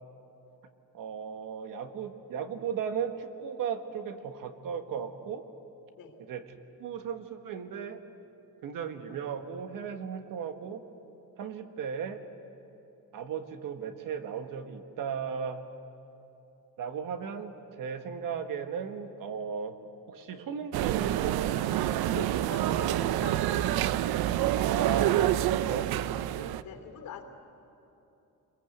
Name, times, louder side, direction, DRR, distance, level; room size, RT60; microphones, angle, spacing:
voice 1, 0.9-5.4 6.3-6.4 6.8-8.0 8.6-10.8 11.4-12.2 13.1-15.6 16.8-19.8 20.1-21.6 24.5-26.2, right 7 dB, 60° right, 7 dB, 1.6 m, -36 dB
sound 1, 20.7-26.6, right 13 dB, 80° right, 0.7 m, -27 dB
voice 2, 22.1-23.8 26.6-27.2, left 6 dB, 70° left, 5 dB, 3.2 m, -44 dB
27.5 x 21.5 x 8.0 m, 2.9 s
cardioid pair, 170°, 36 cm